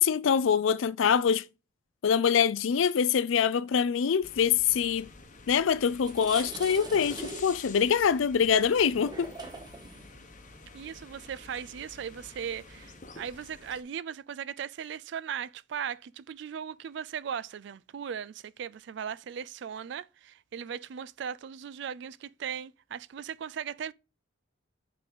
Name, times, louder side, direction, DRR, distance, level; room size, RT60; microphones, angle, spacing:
voice 1, 0.0-1.4 2.0-5.1 5.5-9.3, left 7 dB, 80° left, 0.4 m, -24 dB
sound 1, 4.2-13.8, left 4 dB, 40° left, 0.9 m, -50 dB
sound 2, 5.4-5.5 5.9-13.2, right 2 dB, 20° right, 1.1 m, -44 dB
voice 2, 10.7-23.9, right 8 dB, 60° right, 0.3 m, -38 dB
5.7 x 3.9 x 5.3 m
head